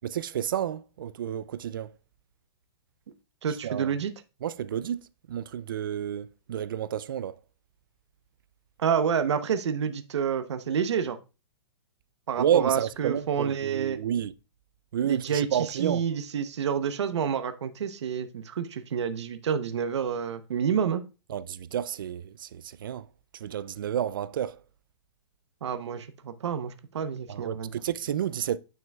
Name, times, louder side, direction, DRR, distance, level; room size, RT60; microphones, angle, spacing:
voice 1, 0.0-1.9 3.6-3.9 4.4-5.0 5.3-7.3 12.4-14.3 14.9-16.1 21.3-23.1 23.3-24.6 27.3-28.6, right 9 dB, 50° right, 0.4 m, -30 dB
voice 2, 3.4-4.1 8.8-11.2 12.3-14.0 15.0-21.0 25.6-27.7, right 7 dB, 80° right, 0.8 m, -29 dB
9.1 x 5.6 x 2.3 m
hypercardioid pair, 180°, 14 cm